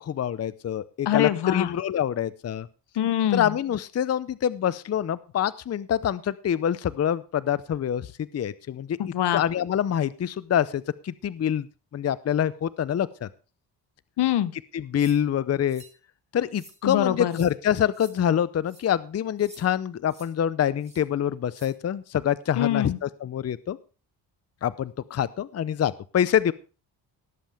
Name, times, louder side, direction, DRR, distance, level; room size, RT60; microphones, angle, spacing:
voice 1, 0.0-2.7 3.3-9.0 9.3-11.7 11.9-13.3 14.7-15.8 16.3-23.8 24.6-26.5, left 9 dB, 40° left, 17 dB, 0.6 m, -26 dB
voice 2, 1.1-1.7 3.0-3.5 9.0-9.4 14.2-14.5 16.8-17.4 22.6-23.0, left 11 dB, 75° left, 16 dB, 0.9 m, -24 dB
sound 1, 15.0-15.2 15.7-15.9 16.5-16.8 17.3-17.5 17.9-18.1 18.6-18.8 19.4-19.6 20.1-20.3 20.8-21.0 21.5-21.7, right 2 dB, 15° right, 3.1 m, -50 dB
19.0 x 7.5 x 3.4 m, 0.34 s
cardioid pair, 90°, 41 cm